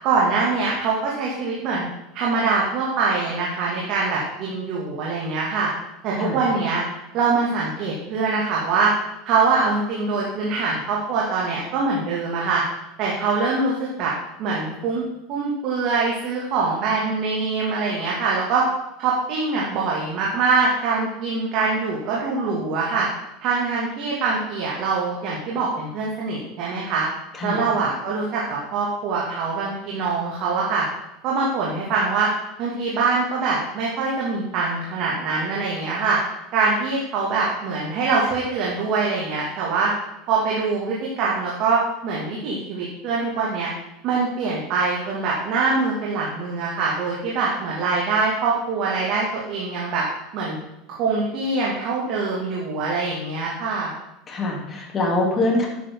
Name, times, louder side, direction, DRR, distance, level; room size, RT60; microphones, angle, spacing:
voice 1, 0.0-1.9 2.1-5.7 6.0-6.8 7.1-8.9 9.2-12.6 13.0-14.1 14.4-15.0 15.3-18.6 19.0-23.1 23.4-27.1 27.4-30.8 31.2-32.3 32.6-36.2 36.5-39.9 40.3-43.7 44.0-50.0 50.3-50.6 51.0-53.9, right 4 dB, 55° right, -4 dB, 2.6 m, -23 dB
voice 2, 54.3-55.7, left 2 dB, 30° left, -1 dB, 3.5 m, -23 dB
10.5 x 9.2 x 4.0 m, 0.90 s
hypercardioid pair, 90°, 0 cm